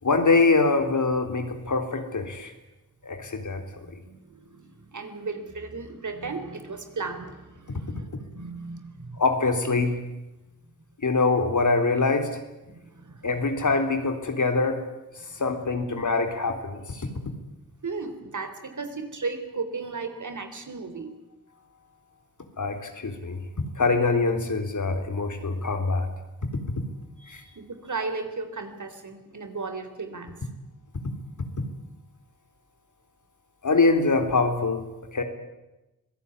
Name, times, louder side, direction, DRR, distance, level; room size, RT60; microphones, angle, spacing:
voice 1, 0.0-2.5 3.0-3.6 7.7-7.8 9.2-10.0 11.0-12.4 13.2-14.8 15.4-17.1 22.6-23.4 23.8-26.1 27.3-27.4 33.6-35.2, left 3 dB, 60° left, 6 dB, 3.9 m, -24 dB
voice 2, 4.0-9.2 12.7-13.4 15.2-15.4 17.8-21.1 27.2-30.5, right 4 dB, 60° right, 8 dB, 3.8 m, -35 dB
25.0 x 17.0 x 9.9 m, 1.0 s
cardioid pair, 45°, 34 cm